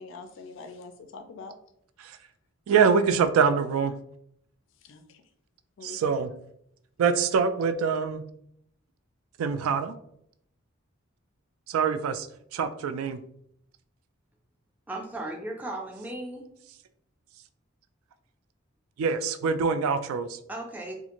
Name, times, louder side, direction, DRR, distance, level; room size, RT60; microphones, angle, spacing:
voice 1, 0.0-1.5 4.8-5.2 5.8-6.1, left 4 dB, 65° left, 7 dB, 0.3 m, -44 dB
voice 2, 2.7-3.9 5.8-6.3 7.0-8.2 9.4-10.0 11.7-12.3 12.5-13.2 19.0-20.4, right 6 dB, 85° right, 11 dB, 0.3 m, -24 dB
voice 3, 14.9-16.5 20.5-21.0, right 1 dB, 10° right, 0 dB, 0.4 m, -36 dB
2.5 x 2.5 x 2.9 m, 0.71 s
head